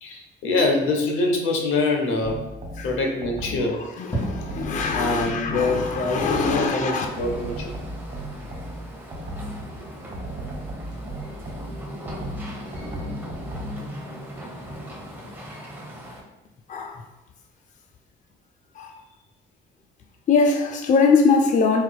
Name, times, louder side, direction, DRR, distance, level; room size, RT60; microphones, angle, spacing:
voice 1, 0.0-2.4 2.8-3.8 4.9-7.7, left 3 dB, 85° left, 1 dB, 0.7 m, -24 dB
sound 1, 2.2-3.8 4.2-6.7 7.2-9.7 10.1-13.9, right 1 dB, 45° right, 1.1 m, -36 dB
sound 2, 3.0-4.9 5.3-5.4 5.7-5.8 6.1-6.3 6.6-15.2, right 1 dB, 20° left, 1.4 m, -41 dB
voice 2, 4.0-7.1 16.7-17.0 18.8-18.9 20.3-21.8, left 4 dB, 40° left, 3 dB, 0.4 m, -22 dB
sound 3, 5.7-16.2, equal, 10° right, 0.9 m, -38 dB
4.2 x 2.8 x 2.2 m, 0.98 s
cardioid pair, 90°, 20 cm